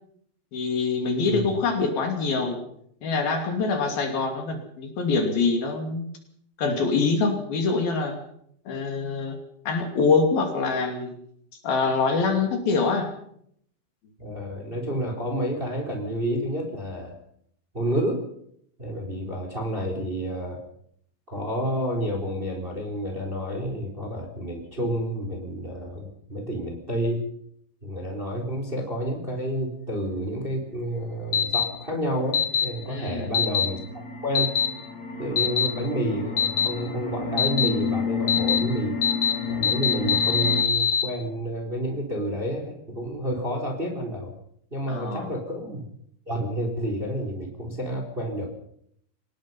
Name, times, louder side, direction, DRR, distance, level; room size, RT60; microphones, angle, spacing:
voice 1, 0.5-2.6 3.0-6.1 6.6-8.2 8.7-9.4 9.7-11.1 11.6-13.1 32.9-33.3 44.9-45.3, left 4 dB, 60° left, 4 dB, 4.3 m, -25 dB
voice 2, 14.2-17.1 17.7-18.2 18.8-20.6 21.3-27.3 27.8-33.8 34.2-34.5 35.2-39.0 39.5-44.3 44.7-45.8 46.3-48.5, right 1 dB, 15° right, 2 dB, 3.3 m, -29 dB
sound 1, 31.3-31.6 32.3-32.6 33.3-33.7 34.3-34.7 35.4-35.7 36.4-36.7 37.4-37.7 38.3-38.6 39.0-39.3 39.6-41.0, left 7 dB, 80° left, 1.3 m, -22 dB
sound 2, 31.7-40.6, left 5 dB, 35° left, 1.7 m, -32 dB
24.5 x 19.0 x 5.6 m, 0.69 s
omnidirectional pair, 5.1 m